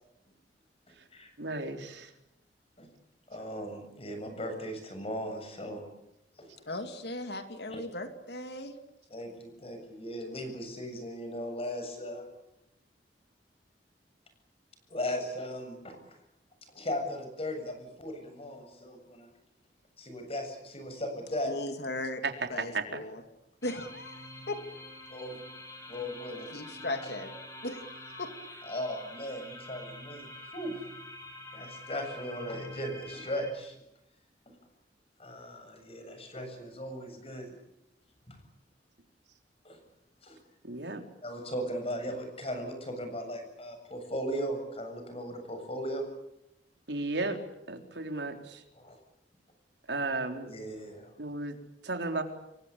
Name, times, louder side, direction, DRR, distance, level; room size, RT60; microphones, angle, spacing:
voice 1, 1.4-2.1 22.2-22.3 22.7-22.8 40.6-41.0 46.9-47.4 47.7-48.6 49.9-50.5 51.2-51.6 51.8-52.2, right 3 dB, 80° right, 5 dB, 3.9 m, -34 dB
voice 2, 3.3-5.8 6.4-6.7 7.7-7.8 9.1-12.2 14.9-16.0 16.7-19.3 20.0-21.6 25.1-25.4 25.9-26.5 28.7-30.9 31.5-33.8 35.2-37.5 38.3-38.4 39.6-39.8 40.2-40.4 41.2-46.1 48.7-49.0 50.5-51.1, equal, 35° left, 6 dB, 7.5 m, -37 dB
voice 3, 6.7-8.7 21.4-22.2 22.5-23.2 23.6-24.7 26.5-27.3 27.6-28.3, left 1 dB, 65° left, 7 dB, 2.8 m, -37 dB
sound 1, 23.6-33.5, left 1 dB, 20° left, 5.7 m, -46 dB
28.0 x 23.0 x 8.6 m, 0.85 s
head